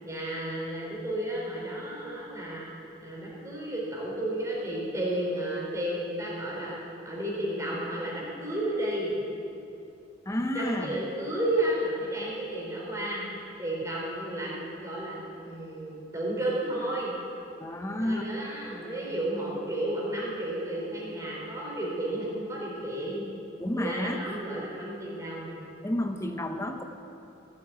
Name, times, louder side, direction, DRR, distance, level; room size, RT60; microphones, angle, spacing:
voice 1, 0.0-2.6 3.0-6.8 7.0-9.1 10.5-13.3 13.6-17.1 18.0-23.2 23.7-25.6, right 1 dB, 15° right, -4 dB, 3.9 m, -32 dB
voice 2, 10.3-10.9 17.6-18.2 23.6-24.2 25.8-26.8, left 1 dB, 15° left, 5 dB, 0.7 m, -30 dB
16.5 x 8.4 x 9.2 m, 2.8 s
head